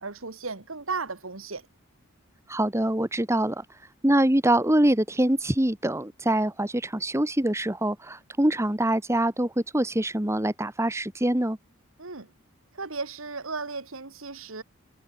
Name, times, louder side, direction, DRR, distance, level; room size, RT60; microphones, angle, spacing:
voice 1, 0.0-1.6 12.0-12.3 12.8-14.6, right 4 dB, 75° right, 2.1 m, -35 dB
voice 2, 2.5-3.6 4.0-11.6, right 1 dB, 15° right, 1.4 m, -24 dB
head